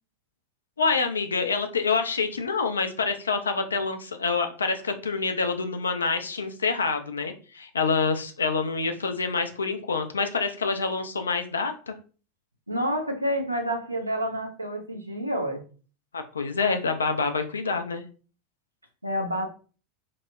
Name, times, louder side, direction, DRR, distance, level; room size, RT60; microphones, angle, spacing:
voice 1, 0.8-11.9 16.1-18.0, left 4 dB, 75° left, 0.3 m, -27 dB
voice 2, 12.7-15.6 19.0-19.5, equal, 85° right, 0.4 m, -28 dB
2.7 x 2.0 x 2.2 m
figure-of-eight pair, 80°, 0 cm